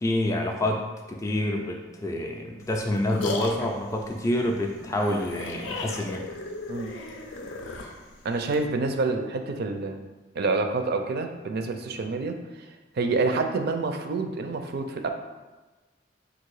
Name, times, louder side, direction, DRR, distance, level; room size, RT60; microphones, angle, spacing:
voice 1, 0.0-6.2, left 1 dB, 15° left, 0 dB, 0.3 m, -27 dB
sound 1, 2.6-8.7, left 2 dB, 90° left, 0.5 m, -36 dB
voice 2, 8.2-10.0 10.3-15.1, right 3 dB, 55° right, 6 dB, 0.4 m, -28 dB
3.9 x 2.6 x 4.6 m, 1.2 s
head